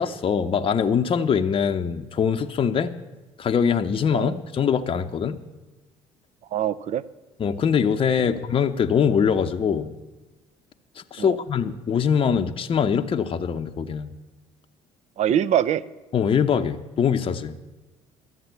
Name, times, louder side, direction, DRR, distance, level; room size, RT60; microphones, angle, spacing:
voice 1, 0.0-2.9 3.4-5.4 7.4-10.0 11.0-14.1 16.1-17.5, left 7 dB, 35° left, 7 dB, 0.7 m, -23 dB
voice 2, 6.5-7.0 8.2-8.3 11.2-11.4 15.2-15.8, right 10 dB, 45° right, 16 dB, 0.5 m, -24 dB
12.0 x 7.4 x 8.1 m, 1.2 s
hypercardioid pair, 55°, 16 cm